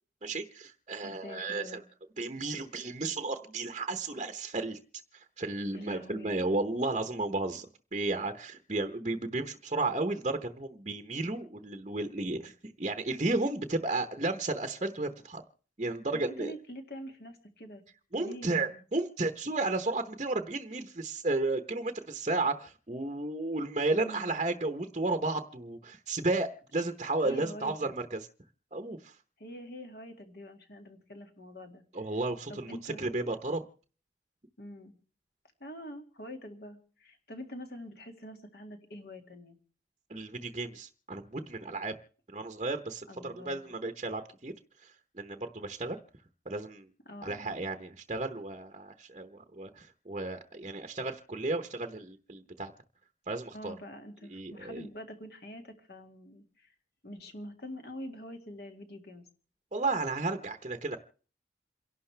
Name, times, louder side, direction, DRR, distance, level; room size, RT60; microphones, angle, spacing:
voice 1, 0.2-1.8 2.2-4.8 5.1-15.4 15.8-16.5 18.1-28.3 28.7-29.2 31.9-33.6 40.1-42.0 42.3-46.0 46.4-46.9 47.2-52.7 53.3-53.8 54.3-54.9 59.7-61.0, right 2 dB, 35° right, 6 dB, 0.9 m, -33 dB
voice 2, 1.0-1.8 5.7-6.3 16.1-17.8 18.2-18.8 23.9-24.3 27.2-27.9 29.4-31.8 32.5-33.0 34.6-34.9 35.6-39.6 43.1-43.7 47.1-47.5 53.5-56.7 57.0-59.3, equal, 55° left, 5 dB, 2.1 m, -45 dB
28.5 x 11.5 x 3.3 m, 0.42 s
head